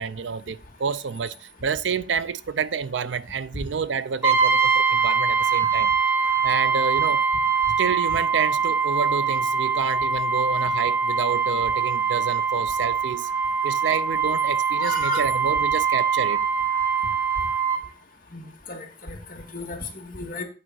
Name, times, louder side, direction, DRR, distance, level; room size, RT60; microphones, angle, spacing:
voice 1, 0.0-5.9 6.4-7.2 7.8-13.3 13.6-16.5, right 6 dB, 90° right, 0.5 m, -29 dB
Brass instrument, 4.2-17.9, right 5 dB, 10° right, 0.9 m, -23 dB
voice 2, 14.8-15.2 18.3-20.4, left 1 dB, 50° left, 2.0 m, -34 dB
8.6 x 3.9 x 6.1 m
head